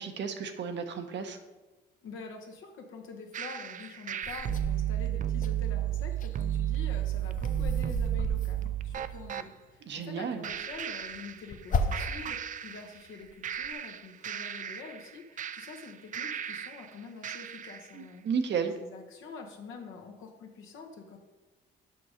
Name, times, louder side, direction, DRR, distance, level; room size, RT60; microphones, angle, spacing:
voice 1, 0.0-1.4 9.9-10.4 17.9-18.7, right 6 dB, 65° right, 7 dB, 0.9 m, -33 dB
voice 2, 2.0-18.3 18.8-21.2, left 4 dB, 85° left, 2 dB, 1.2 m, -46 dB
sound 1, 3.3-9.5 10.4-11.7 11.9-13.1 13.4-16.9 17.2-17.9, right 11 dB, 40° right, 0.4 m, -33 dB
sound 2, 4.2-5.5 5.9-9.5 10.5-12.4 12.8-13.7, left 2 dB, 40° left, 0.7 m, -36 dB
6.8 x 5.4 x 5.0 m, 1.1 s
cardioid pair, 90°, 20 cm